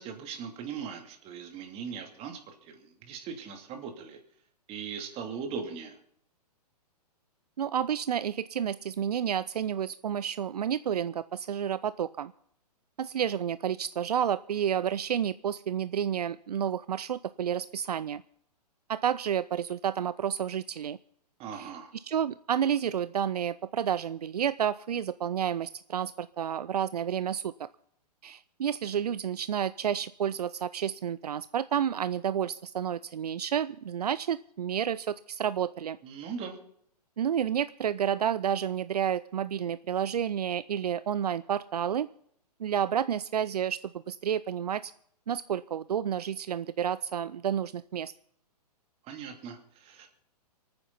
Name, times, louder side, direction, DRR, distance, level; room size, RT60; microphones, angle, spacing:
voice 1, 0.0-4.2 4.7-6.0 21.4-21.9 36.0-36.6 49.0-50.1, right 6 dB, 30° right, 4 dB, 2.8 m, -39 dB
voice 2, 7.6-12.3 13.0-18.2 18.9-21.0 21.5-21.7 22.0-27.7 28.2-36.0 37.2-42.1 42.6-44.9 45.3-48.1, right 9 dB, 75° right, 16 dB, 0.5 m, -30 dB
29.0 x 9.6 x 4.1 m, 0.68 s
figure-of-eight pair, 120°, 21 cm